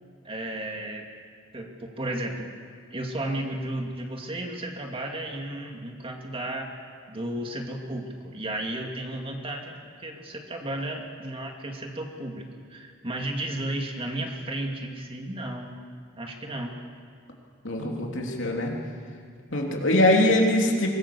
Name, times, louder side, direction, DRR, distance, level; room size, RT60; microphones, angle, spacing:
voice 1, 0.2-1.1 1.5-2.5 2.9-6.7 7.1-15.8 16.2-16.8, right 1 dB, 30° right, 2 dB, 2.3 m, -33 dB
voice 2, 17.6-18.7 19.5-20.9, left 1 dB, 70° left, 0 dB, 3.3 m, -22 dB
23.5 x 19.5 x 7.0 m, 2.2 s
head